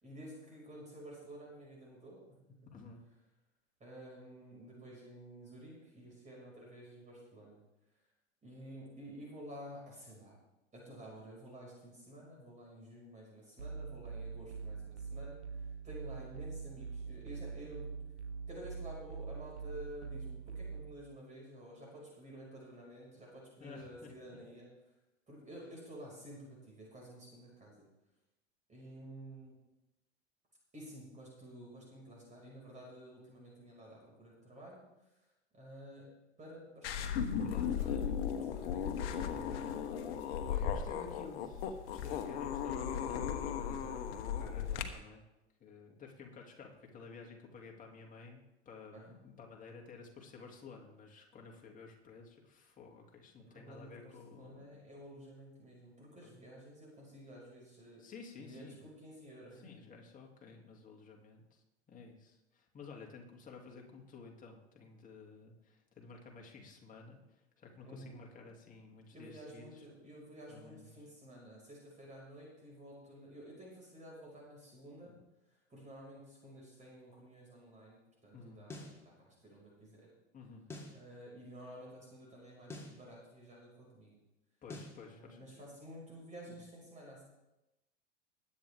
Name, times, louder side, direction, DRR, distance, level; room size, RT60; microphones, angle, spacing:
voice 1, 0.0-2.4 3.8-7.6 8.4-10.4 10.7-17.9 18.5-24.7 25.3-27.9 28.7-29.6 30.7-34.8 35.5-36.1 36.4-37.5 37.8-38.1 38.5-39.5 48.9-49.2 53.5-58.0 58.4-59.7 67.8-68.2 69.1-75.1 75.7-80.1 80.9-84.2 85.0-87.2, right 1 dB, 20° right, -3 dB, 5.5 m, -51 dB
voice 2, 2.7-3.0 23.6-24.1 37.4-38.6 40.5-45.2 45.6-54.8 56.2-56.4 58.0-58.8 59.5-67.2 67.6-69.8 70.5-70.9 75.0-75.2 78.3-78.7 80.3-80.7 84.6-85.4 86.5-86.6, left 5 dB, 25° left, 0 dB, 2.7 m, -53 dB
sound 1, 13.6-20.9, right 5 dB, 80° right, 1.3 m, -44 dB
sound 2, 36.8-44.8, left 8 dB, 60° left, 1.4 m, -36 dB
sound 3, 78.7-79.0 80.7-81.0 82.7-83.0 84.7-85.0, left 2 dB, 10° left, 2.8 m, -46 dB
21.0 x 8.9 x 3.6 m, 0.96 s
figure-of-eight pair, 85°, 33 cm